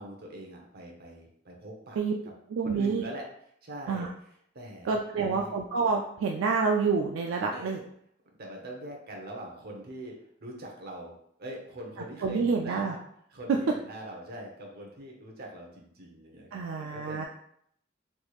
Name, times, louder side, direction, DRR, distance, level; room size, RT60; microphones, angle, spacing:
voice 1, 0.0-2.0 2.6-3.3 3.6-4.1 4.5-5.5 7.5-7.8 8.4-13.0 13.3-17.3, right 1 dB, 55° right, 0 dB, 0.8 m, -42 dB
voice 2, 2.5-3.0 3.9-4.1 4.9-7.8 12.2-12.9 16.5-17.3, right 5 dB, 80° right, 1 dB, 0.3 m, -28 dB
3.4 x 3.0 x 2.3 m, 0.68 s
head